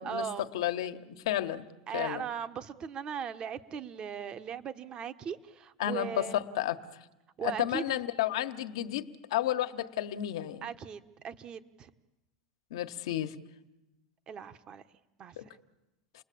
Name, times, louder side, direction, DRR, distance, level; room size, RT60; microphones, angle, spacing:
voice 1, 0.0-0.5 1.9-6.4 7.4-8.0 10.6-11.9 14.3-14.8 15.2-15.6, right 7 dB, 35° right, 11 dB, 1.2 m, -38 dB
voice 2, 0.5-1.6 1.9-2.2 5.8-6.8 7.4-10.6 12.7-13.4 15.4-15.5, left 12 dB, 85° left, 9 dB, 1.4 m, -32 dB
29.5 x 20.5 x 8.6 m, 1.0 s
supercardioid pair, 130°, 3 cm